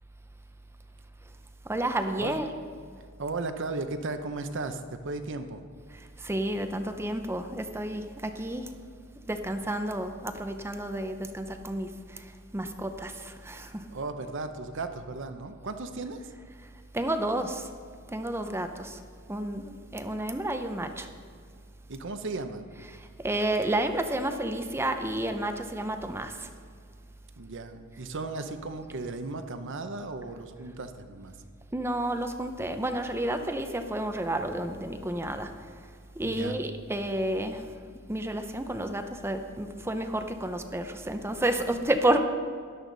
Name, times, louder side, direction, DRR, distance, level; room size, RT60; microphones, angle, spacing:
voice 1, 1.6-2.5 5.9-8.7 9.3-13.9 16.9-17.7 18.1-19.0 19.3-21.1 22.7-26.5 31.7-35.7 36.1-37.8 38.1-42.2, right 1 dB, 10° right, 7 dB, 0.6 m, -31 dB
voice 2, 3.2-5.6 13.9-16.3 21.9-22.7 27.4-31.4 36.2-36.6, right 3 dB, 60° right, 8 dB, 0.8 m, -36 dB
13.5 x 11.0 x 4.0 m, 2.1 s
head